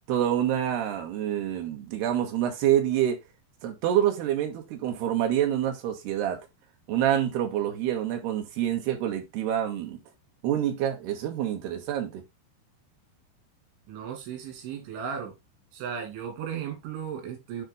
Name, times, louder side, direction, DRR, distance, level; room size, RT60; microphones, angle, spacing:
voice 1, 0.1-3.2 3.6-6.4 6.9-10.0 10.4-12.2, right 11 dB, 70° right, 3.3 m, -27 dB
voice 2, 13.9-15.3 15.7-17.6, right 7 dB, 85° right, 5.0 m, -35 dB
9.8 x 3.6 x 3.8 m
omnidirectional pair, 5.2 m